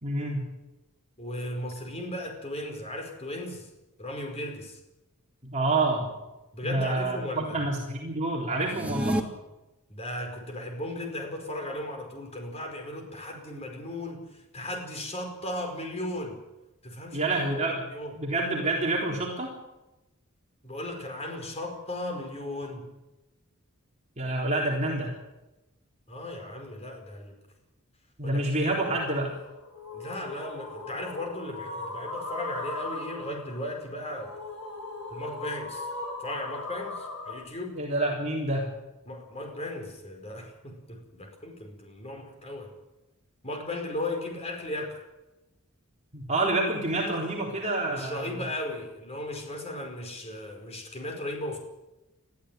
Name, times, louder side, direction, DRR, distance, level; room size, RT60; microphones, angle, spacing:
voice 1, 0.0-0.5 5.4-6.1 6.6-9.3 17.1-17.8 18.2-19.5 24.2-25.1 28.2-29.4 37.8-38.7 46.1-48.4, right 2 dB, 30° right, -2 dB, 3.8 m, -28 dB
voice 2, 1.2-3.7 4.0-4.8 6.5-7.6 8.5-8.7 9.9-16.4 16.8-17.3 17.7-18.1 20.6-22.9 26.1-27.3 28.2-28.5 29.9-34.3 35.1-35.9 36.2-37.8 39.1-42.7 43.4-45.0 47.9-51.6, left 1 dB, 30° left, 3 dB, 5.2 m, -36 dB
sound 1, 8.6-9.2, right 1 dB, 5° right, 1.7 m, -28 dB
sound 2, 28.9-37.4, left 2 dB, 90° left, 7.8 m, -39 dB
21.0 x 14.0 x 9.4 m, 1.0 s
head